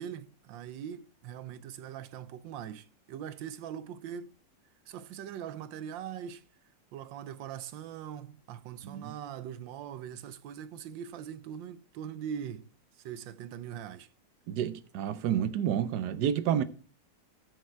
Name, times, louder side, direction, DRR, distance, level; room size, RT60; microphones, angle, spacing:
voice 1, 0.0-4.3 4.9-6.5 6.9-12.7 13.0-14.1, right 9 dB, 85° right, 1.4 m, -41 dB
voice 2, 8.8-9.1 14.5-16.6, right 9 dB, 70° right, 1.2 m, -29 dB
10.5 x 6.7 x 4.5 m
omnidirectional pair, 2.0 m